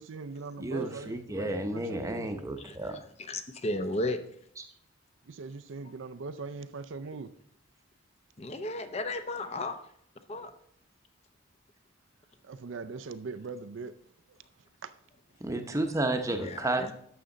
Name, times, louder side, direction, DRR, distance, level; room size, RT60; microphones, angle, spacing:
voice 1, 0.0-2.3 5.3-7.3 12.4-13.9 14.8-14.9, right 4 dB, 65° right, 11 dB, 0.5 m, -40 dB
voice 2, 0.6-3.0 4.6-4.7 15.4-16.9, right 1 dB, 15° right, 6 dB, 0.8 m, -32 dB
voice 3, 2.6-3.0 3.3-4.2 8.4-9.8 10.3-10.5 16.4-16.9, left 2 dB, 30° left, 9 dB, 0.6 m, -34 dB
11.5 x 6.9 x 3.9 m, 0.67 s
head